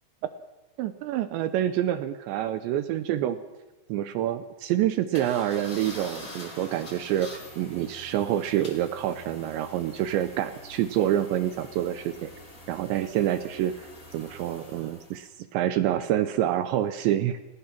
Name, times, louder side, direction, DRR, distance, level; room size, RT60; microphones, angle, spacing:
voice 1, 0.8-3.4 3.9-12.3 12.7-13.9 14.1-17.4, right 12 dB, 80° right, 10 dB, 2.7 m, -27 dB
sound 1, 5.1-15.3, left 1 dB, 20° left, 3.1 m, -45 dB
29.5 x 17.5 x 6.0 m, 1.2 s
omnidirectional pair, 5.9 m